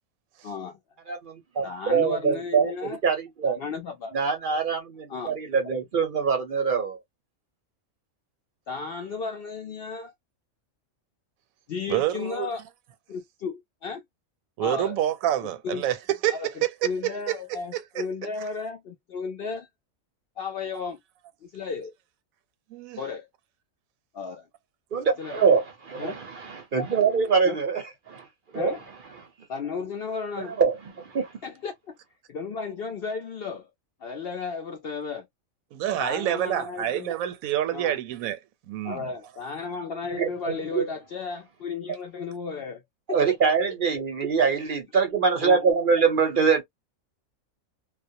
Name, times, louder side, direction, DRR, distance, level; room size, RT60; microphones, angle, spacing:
voice 1, 0.4-0.8 1.6-3.0 3.4-4.2 5.1-5.4 8.7-10.1 11.7-12.6 13.1-14.0 14.6-15.0 15.4-15.8 16.3-19.7 20.4-21.0 21.4-21.9 23.0-23.3 24.1-24.5 25.2-25.5 26.0-26.2 27.4-27.6 28.5-28.8 29.5-30.6 31.4-32.0 32.3-33.7 34.0-35.3 36.0-37.1 37.7-38.0 38.8-42.8 43.1-43.2 45.4-45.6, left 5 dB, 65° left, 0.6 m, -34 dB
voice 2, 1.1-2.7 3.0-3.6 4.1-7.0 24.9-28.3 28.5-28.7 30.5-31.3 40.1-40.8 43.1-46.6, right 5 dB, 55° right, 0.6 m, -24 dB
voice 3, 11.9-12.5 14.6-17.3 17.7-18.0 22.7-23.0 35.7-38.4 38.7-39.1, right 12 dB, 80° right, 1.0 m, -27 dB
2.3 x 2.1 x 2.5 m
omnidirectional pair, 1.4 m